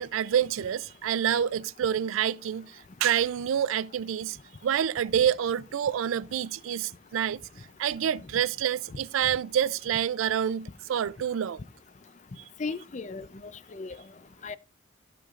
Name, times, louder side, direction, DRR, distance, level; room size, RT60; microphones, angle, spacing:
voice 1, 0.0-4.4 4.6-7.4 7.8-11.6 12.4-12.5, right 9 dB, 90° right, 0.3 m, -27 dB
voice 2, 12.6-14.0 14.4-14.6, left 4 dB, 35° left, 0.4 m, -36 dB
14.0 x 6.9 x 2.4 m
head